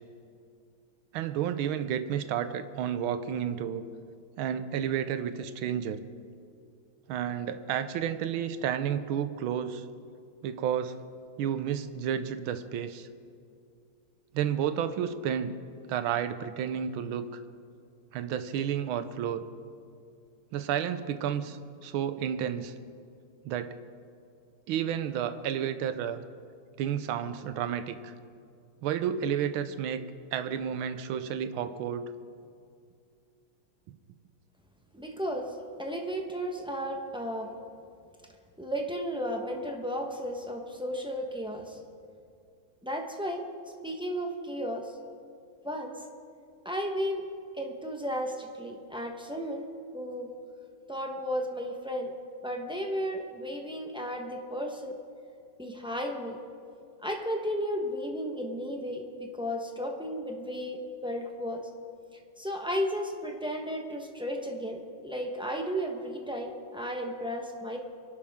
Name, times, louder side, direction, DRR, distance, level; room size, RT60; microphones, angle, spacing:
voice 1, 1.1-3.8 4.4-6.0 7.1-9.8 10.4-11.0 11.4-13.1 14.3-15.5 15.9-17.4 18.1-19.5 20.5-22.7 23.4-23.8 24.7-26.2 26.8-28.1 28.8-30.0 30.3-32.1, right 9 dB, 75° right, 11 dB, 1.5 m, -31 dB
voice 2, 34.9-37.5 38.6-41.8 42.8-43.4 43.8-44.9 45.6-46.0 46.6-47.2 47.5-49.7 49.9-50.3 50.9-52.1 52.4-54.9 55.6-56.4 57.0-61.7 62.4-67.8, equal, 5° right, 2 dB, 0.5 m, -34 dB
24.5 x 11.5 x 3.6 m, 2.4 s
omnidirectional pair, 2.3 m